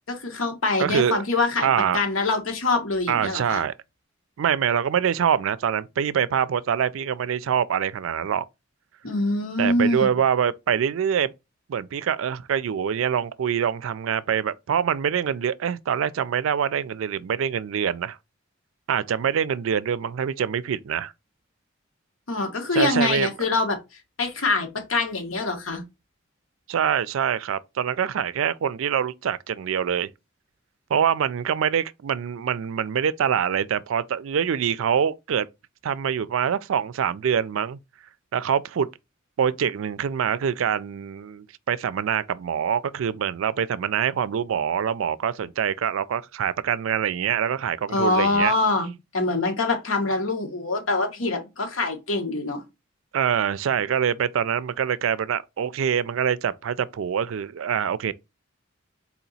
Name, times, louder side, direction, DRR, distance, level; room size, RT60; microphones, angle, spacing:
voice 1, 0.1-1.7 1.9-3.6 9.0-10.1 22.3-23.8 24.2-25.8 47.9-52.6, left 2 dB, 85° left, 1.3 m, -24 dB
voice 2, 0.8-1.2 1.6-2.0 3.1-3.7 4.4-8.5 9.6-11.3 11.7-18.2 18.9-21.1 22.7-23.3 26.7-30.1 30.9-35.5 35.8-37.8 38.3-38.9 39.4-48.5 53.1-58.1, right 8 dB, 75° right, 0.4 m, -25 dB
4.2 x 2.9 x 4.0 m
head